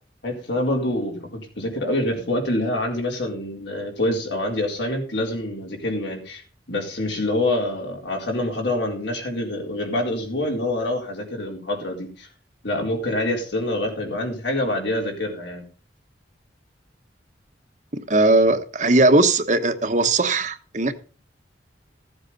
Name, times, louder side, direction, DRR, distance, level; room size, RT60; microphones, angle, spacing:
voice 1, 0.2-6.4 6.7-12.3 12.6-15.6, left 1 dB, 75° left, 4.3 m, -26 dB
voice 2, 18.1-20.9, right 2 dB, 40° right, 1.2 m, -18 dB
15.5 x 7.9 x 5.4 m
head